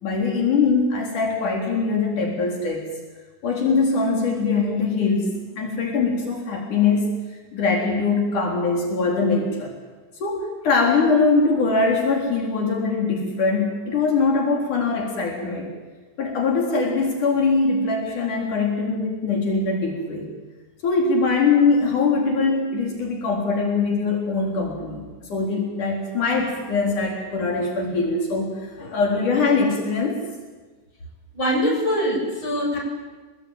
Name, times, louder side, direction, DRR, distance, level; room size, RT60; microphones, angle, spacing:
voice 1, 0.0-2.9 3.4-9.7 10.2-15.7 16.2-20.3 20.8-30.2, left 4 dB, 85° left, -1 dB, 5.3 m, -22 dB
voice 2, 31.3-32.8, equal, 40° left, 0 dB, 8.6 m, -23 dB
28.0 x 20.5 x 9.1 m, 1.3 s
omnidirectional pair, 3.5 m